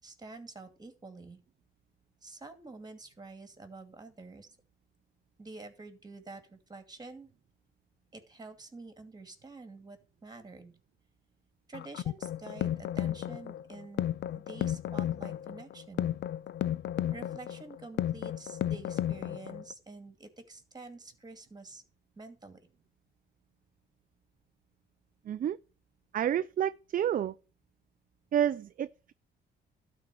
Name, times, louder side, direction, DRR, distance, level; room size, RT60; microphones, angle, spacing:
voice 1, 0.0-1.4 2.2-4.6 5.4-7.3 8.1-10.7 11.7-14.1 14.3-16.1 17.1-21.8 22.2-22.6, right 3 dB, 20° right, 2.4 m, -48 dB
sound 1, 11.7-19.7, left 11 dB, 60° left, 0.5 m, -33 dB
voice 2, 25.3-25.6 26.1-27.3 28.3-29.1, right 10 dB, 45° right, 0.4 m, -29 dB
12.0 x 4.4 x 7.6 m
cardioid pair, 90°, 20 cm